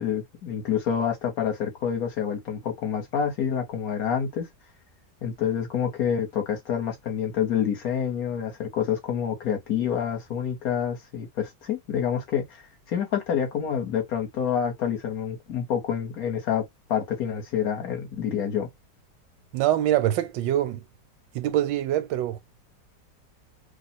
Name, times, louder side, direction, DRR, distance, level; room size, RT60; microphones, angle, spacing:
voice 1, 0.0-4.5 5.2-18.7, left 8 dB, 60° left, 1.1 m, -28 dB
voice 2, 19.5-20.8 21.3-22.4, right 12 dB, 85° right, 1.3 m, -24 dB
3.0 x 2.0 x 4.1 m
omnidirectional pair, 1.9 m